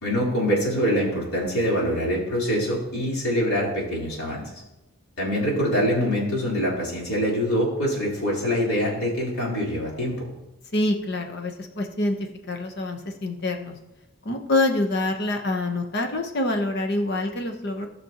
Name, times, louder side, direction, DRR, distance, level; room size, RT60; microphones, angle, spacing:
voice 1, 0.0-4.5 5.2-10.3, equal, 80° left, -5 dB, 3.8 m, -24 dB
voice 2, 10.7-13.7 14.2-17.9, left 2 dB, 50° left, 5 dB, 1.0 m, -26 dB
17.5 x 6.2 x 3.0 m, 0.95 s
head